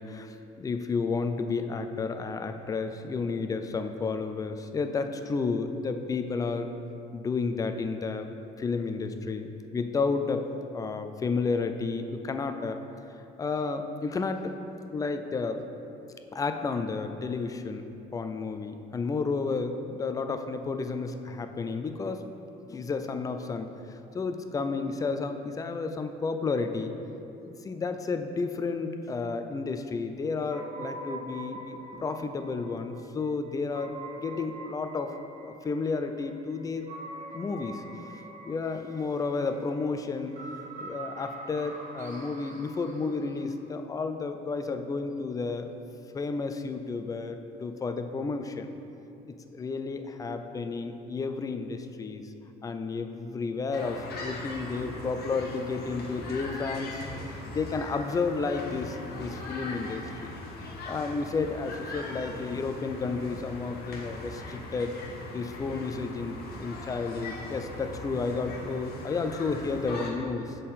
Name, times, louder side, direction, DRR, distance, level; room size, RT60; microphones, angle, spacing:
voice 1, 0.0-6.7 7.1-8.3 8.6-10.5 10.7-12.8 13.4-14.6 14.9-15.7 16.3-17.9 18.1-22.2 22.7-26.9 27.4-35.1 35.4-36.9 37.3-37.8 38.4-45.7 46.1-48.7 49.5-52.3 52.6-57.0 57.3-60.3 60.9-65.0 65.3-70.6, left 4 dB, 20° left, 7 dB, 0.3 m, -32 dB
sound 1, 30.5-43.5, right 2 dB, 50° right, 1.0 m, -44 dB
sound 2, 53.7-70.1, left 2 dB, 70° left, 1.0 m, -40 dB
6.6 x 3.7 x 4.2 m, 2.8 s
cardioid pair, 110°, 17 cm